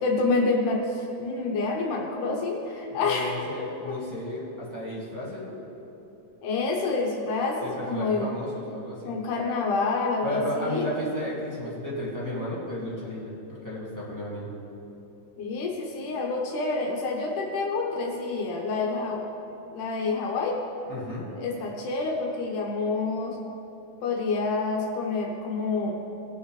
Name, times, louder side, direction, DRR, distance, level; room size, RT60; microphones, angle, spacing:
voice 1, 0.0-4.0 6.4-8.3 9.0-10.9 15.4-19.2 19.7-20.6 21.3-23.4 24.0-25.9, left 3 dB, 75° left, 0 dB, 2.5 m, -28 dB
voice 2, 3.0-5.6 7.6-9.1 10.2-14.5 20.9-21.3, equal, 10° left, -8 dB, 1.2 m, -33 dB
19.0 x 7.0 x 3.2 m, 3.0 s
omnidirectional pair, 3.6 m